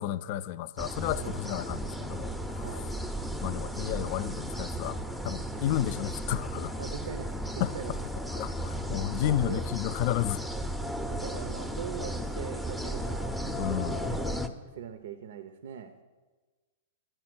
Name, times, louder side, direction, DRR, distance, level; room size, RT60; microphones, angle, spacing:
voice 1, 0.0-2.6 3.4-5.0 5.2-6.8 7.6-8.0 8.3-10.4 13.6-14.2, left 12 dB, 50° left, 0.3 m, -32 dB
sound 1, 0.8-14.5, equal, ahead, 0.5 m, -35 dB
voice 2, 2.6-2.9 5.5-5.6 6.8-7.9 9.2-9.6 11.1-13.3 13.8-14.3 14.7-15.9, right 8 dB, 70° right, 0.5 m, -41 dB
10.0 x 4.4 x 6.0 m
hypercardioid pair, 125°, 0 cm